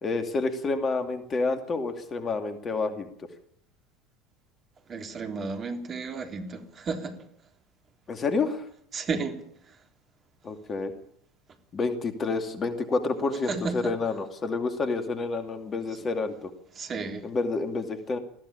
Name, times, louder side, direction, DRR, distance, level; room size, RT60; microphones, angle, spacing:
voice 1, 0.0-3.1 8.1-8.6 10.4-10.9 11.7-16.5 17.2-18.2, left 3 dB, 30° left, 2.5 m, -29 dB
voice 2, 4.9-7.2 8.9-9.4 13.5-13.9 16.0-16.1 16.8-17.3, right 4 dB, 30° right, 3.4 m, -33 dB
21.0 x 15.0 x 8.8 m
figure-of-eight pair, 70°, 0 cm